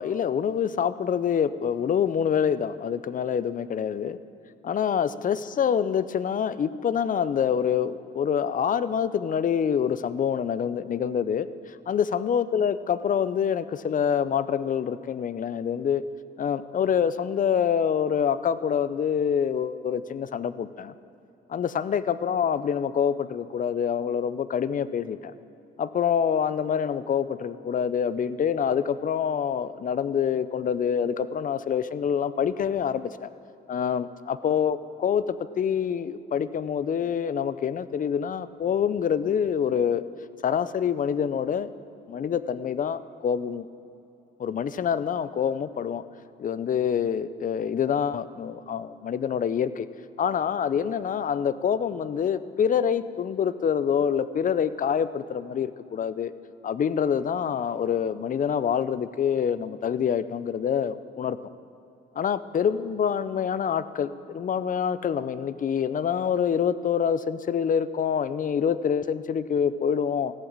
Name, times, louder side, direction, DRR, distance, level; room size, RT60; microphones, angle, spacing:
voice 1, 0.0-4.2 4.6-16.0 16.4-20.9 21.5-25.3 25.8-33.3 33.7-40.0 40.4-41.7 42.1-43.7 44.4-46.0 46.4-49.9 50.2-56.3 56.6-61.4 62.2-70.3, left 8 dB, 40° left, 15 dB, 0.5 m, -26 dB
14.5 x 7.2 x 8.7 m, 2.8 s
cardioid pair, 90°, 20 cm